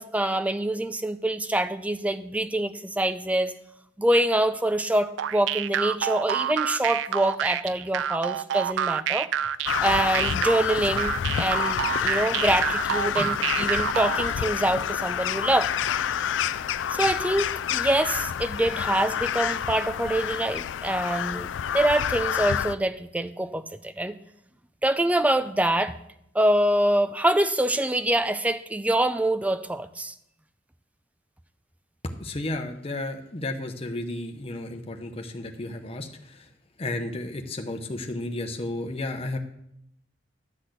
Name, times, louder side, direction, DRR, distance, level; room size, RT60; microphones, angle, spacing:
voice 1, 0.0-3.5 4.0-9.3 9.8-15.7 16.9-21.5 21.7-24.2 24.8-25.9 26.3-30.1, right 1 dB, 10° right, 11 dB, 0.4 m, -25 dB
sound 1, 5.2-14.3, right 10 dB, 80° right, 0.3 m, -28 dB
Crow, 9.7-22.8, left 9 dB, 80° left, 0.3 m, -28 dB
voice 2, 32.2-36.4 36.8-39.4, left 2 dB, 30° left, 4 dB, 0.9 m, -33 dB
12.0 x 4.1 x 8.0 m, 0.77 s
head